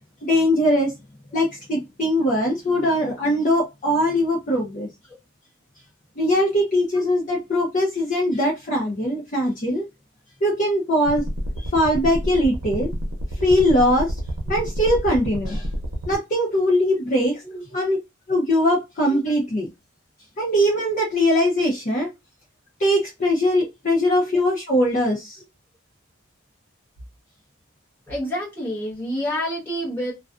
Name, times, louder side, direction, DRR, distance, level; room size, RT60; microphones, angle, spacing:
voice 1, 0.2-0.9 1.3-4.9 6.2-9.9 10.4-11.2 11.6-12.9 13.4-14.1 14.5-15.7 16.1-17.4 17.7-18.0 18.3-19.7 20.4-22.1 22.8-25.4, left 1 dB, 35° left, 0.6 m, -21 dB
sound 1, 11.0-16.1, equal, 75° right, 0.6 m, -29 dB
voice 2, 17.4-17.8 18.6-18.8 24.2-24.4 28.1-30.1, equal, 10° left, 1.1 m, -29 dB
2.4 x 2.2 x 2.4 m
head